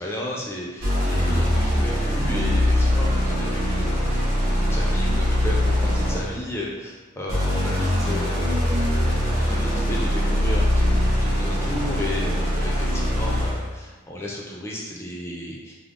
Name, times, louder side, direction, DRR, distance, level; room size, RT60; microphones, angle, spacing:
voice 1, 0.0-4.3 4.6-8.7 9.3-15.7, left 1 dB, 10° left, -4 dB, 0.3 m, -33 dB
sound 1, 0.8-6.4 7.3-13.7, left 1 dB, 85° right, 1.2 m, -22 dB
3.4 x 2.0 x 2.4 m, 1.3 s
head